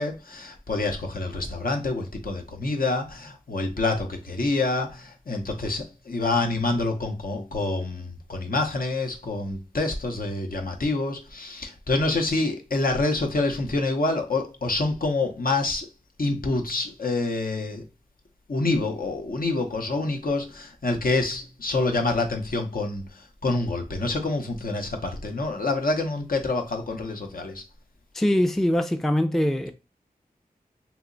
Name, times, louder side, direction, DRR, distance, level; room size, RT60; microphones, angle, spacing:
voice 1, 0.0-15.9 16.2-17.8 18.5-23.0 23.4-27.6, left 2 dB, 65° left, 0.7 m, -27 dB
voice 2, 28.1-29.7, left 1 dB, ahead, 0.4 m, -22 dB
2.9 x 2.1 x 3.8 m
wide cardioid pair, 45°, 16 cm